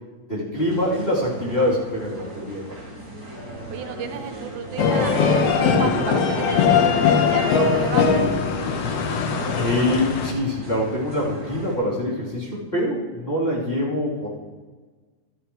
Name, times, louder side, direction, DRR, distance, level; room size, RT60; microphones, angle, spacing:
voice 1, 0.3-2.6 9.5-14.3, left 1 dB, 15° left, -7 dB, 3.4 m, -24 dB
sound 1, 0.5-11.7, right 1 dB, 10° right, 4.5 m, -39 dB
voice 2, 3.7-8.3, right 7 dB, 80° right, 6 dB, 2.3 m, -32 dB
sound 2, 4.8-10.3, left 5 dB, 65° left, 1.8 m, -20 dB
14.0 x 13.0 x 3.2 m, 1.3 s
omnidirectional pair, 3.6 m